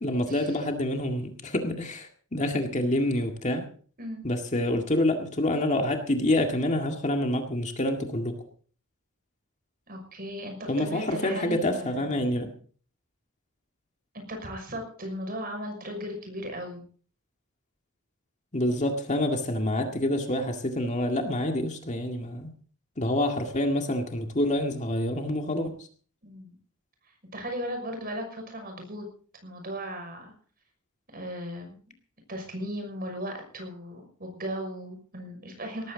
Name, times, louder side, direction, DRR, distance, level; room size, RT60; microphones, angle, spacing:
voice 1, 0.0-3.7 4.2-8.4 10.7-12.5 18.5-22.5 23.0-25.9, left 1 dB, 35° left, 4 dB, 2.0 m, -27 dB
voice 2, 9.9-12.2 14.1-16.8 26.2-26.5 27.3-29.1 29.4-30.3 31.1-31.8 32.3-35.9, equal, 45° right, 4 dB, 6.1 m, -37 dB
18.5 x 14.5 x 4.0 m, 0.44 s
head